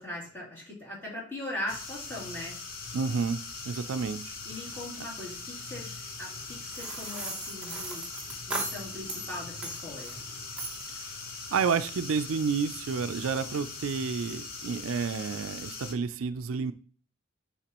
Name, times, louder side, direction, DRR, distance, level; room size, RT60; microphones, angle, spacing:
voice 1, 0.0-2.5 4.4-8.0 8.5-10.2, left 1 dB, 10° left, -6 dB, 2.8 m, -40 dB
sound 1, 1.7-15.9, left 4 dB, 45° left, 1.0 m, -41 dB
voice 2, 2.9-4.4 10.9-11.2 11.5-16.7, right 5 dB, 80° right, 12 dB, 0.4 m, -30 dB
sound 2, 6.7-9.3 9.6-10.2 10.6-10.9, right 2 dB, 5° right, 0.9 m, -37 dB
8.9 x 4.3 x 3.0 m, 0.44 s
head